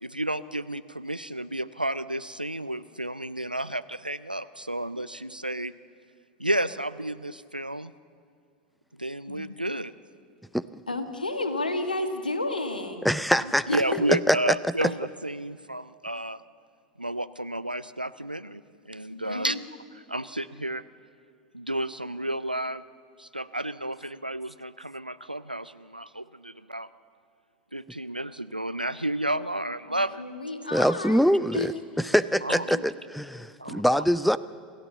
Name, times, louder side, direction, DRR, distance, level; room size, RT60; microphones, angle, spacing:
voice 1, 0.0-5.7 6.4-7.9 9.0-9.9 13.7-16.4 17.0-19.6 20.1-20.8 21.5-22.8 23.2-26.9 27.7-30.2 32.4-32.6 33.6-33.8, right 1 dB, 90° right, 14 dB, 0.5 m, -31 dB
voice 2, 10.9-13.1 13.7-14.0 19.1-19.6 29.9-31.2 31.5-31.7 32.0-32.1 32.7-32.8, left 2 dB, 80° left, 7 dB, 1.7 m, -31 dB
voice 3, 13.0-13.8 14.1-14.7 30.7-31.7 32.0-34.4, equal, ahead, 17 dB, 0.5 m, -24 dB
27.5 x 15.0 x 7.1 m, 2.2 s
figure-of-eight pair, 85°, 5 cm